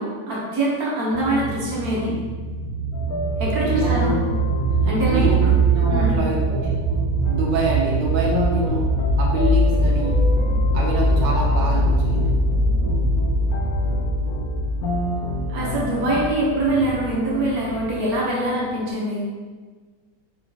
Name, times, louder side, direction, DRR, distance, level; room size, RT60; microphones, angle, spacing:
voice 1, 0.0-2.1 3.4-4.2 4.8-5.5 5.9-6.1 15.5-19.2, right 1 dB, 60° right, -5 dB, 1.3 m, -24 dB
sound 1, 1.1-18.1, right 1 dB, 25° left, 1.0 m, -22 dB
sound 2, 2.9-18.9, left 1 dB, 70° left, 0.9 m, -31 dB
voice 2, 3.7-4.4 5.0-6.7 7.2-8.8 9.2-10.2 10.7-12.3, right 2 dB, 80° right, -2 dB, 1.3 m, -26 dB
4.2 x 3.8 x 2.8 m, 1.4 s
omnidirectional pair, 1.9 m